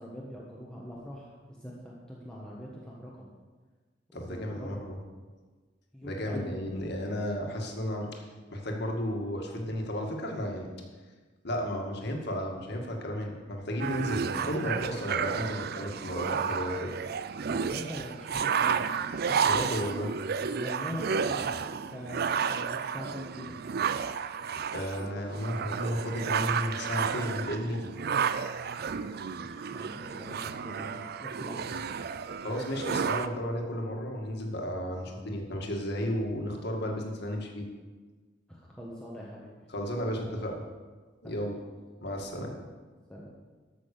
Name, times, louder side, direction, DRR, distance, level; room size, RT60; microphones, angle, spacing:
voice 1, 0.0-3.3 4.1-4.8 5.9-6.9 17.4-18.9 19.2-19.7 20.4-23.6 28.8-30.9 31.2-31.7 38.5-39.5 41.2-41.3 42.3-42.5 43.1-43.3, equal, 5° left, -5 dB, 1.4 m, -43 dB
voice 2, 4.1-5.0 6.0-10.7 11.4-16.9 19.4-20.1 24.7-27.9 32.4-37.7 39.7-40.6 41.2-41.5 42.0-42.5, equal, 60° left, 1 dB, 2.0 m, -33 dB
sound 1, 13.8-33.3, right 6 dB, 55° right, 0.5 m, -32 dB
13.5 x 6.3 x 6.7 m, 1.4 s
head